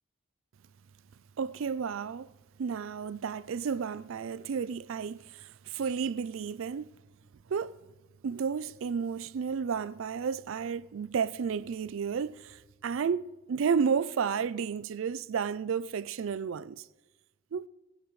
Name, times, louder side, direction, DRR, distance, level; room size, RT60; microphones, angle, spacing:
voice 1, 1.4-2.3 2.6-6.9 7.5-7.8 8.2-16.9 17.5-17.7, right 6 dB, 65° right, 0.4 m, -32 dB
20.5 x 17.5 x 3.2 m
head